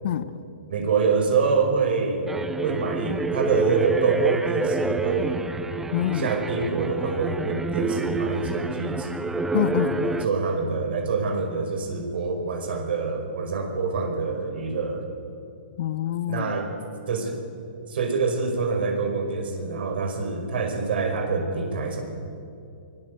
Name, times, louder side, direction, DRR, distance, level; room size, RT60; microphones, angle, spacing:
voice 1, 0.0-0.4 5.9-6.3 9.5-10.1 15.8-16.5, left 11 dB, 60° left, 13 dB, 1.0 m, -26 dB
voice 2, 0.7-2.3 2.6-5.4 6.1-9.1 10.0-15.1 16.3-16.7 17.1-17.4 17.9-22.0, right 4 dB, 70° right, 4 dB, 5.2 m, -26 dB
sound 1, 2.3-10.3, right 3 dB, 5° right, 0.8 m, -28 dB
24.0 x 18.5 x 8.0 m, 2.5 s
hypercardioid pair, 150°, 6 cm